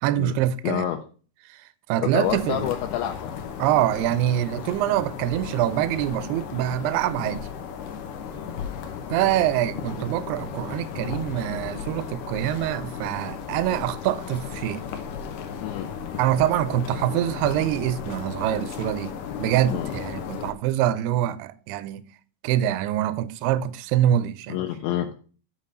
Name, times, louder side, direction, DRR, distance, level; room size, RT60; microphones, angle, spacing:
voice 1, 0.0-0.9 1.5-1.6 1.9-2.7 3.6-7.4 9.1-14.8 16.2-19.1 19.4-22.0 22.4-24.6, right 12 dB, 80° right, 2.4 m, -25 dB
voice 2, 0.6-1.0 2.0-3.3 8.3-8.5 15.6-15.9 19.7-19.9 24.5-25.1, left 12 dB, 90° left, 3.0 m, -28 dB
sound 1, 2.2-20.5, left 7 dB, 70° left, 2.0 m, -35 dB
8.5 x 4.8 x 5.3 m
omnidirectional pair, 5.0 m